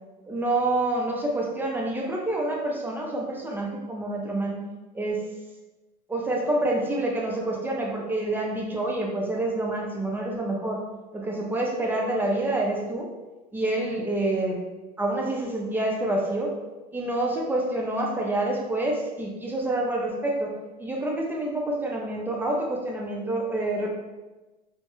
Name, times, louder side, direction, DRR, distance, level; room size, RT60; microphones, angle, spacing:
voice 1, 0.3-4.6 4.9-5.2 6.1-10.8 11.1-13.1 13.5-14.6 15.0-16.5 16.9-20.5 20.8-23.9, right 2 dB, 10° right, -1 dB, 0.5 m, -27 dB
2.2 x 2.1 x 3.0 m, 1.1 s
hypercardioid pair, 95°, 21 cm